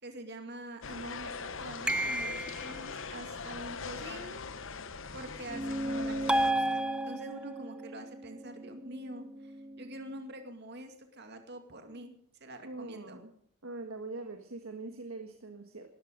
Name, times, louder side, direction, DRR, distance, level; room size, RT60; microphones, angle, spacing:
voice 1, 0.0-4.4 4.8-12.1 12.4-13.2, right 1 dB, 50° right, 6 dB, 2.3 m, -46 dB
sound 1, 0.8-6.5, left 5 dB, 60° left, 1.0 m, -41 dB
sound 2, 1.9-2.8 6.3-7.5, right 1 dB, 5° right, 0.6 m, -30 dB
sound 3, 5.5-10.3, right 1 dB, 25° right, 2.2 m, -39 dB
voice 2, 12.6-13.3 13.6-15.9, right 3 dB, 70° right, 6 dB, 1.6 m, -43 dB
19.0 x 13.5 x 5.2 m, 0.65 s
head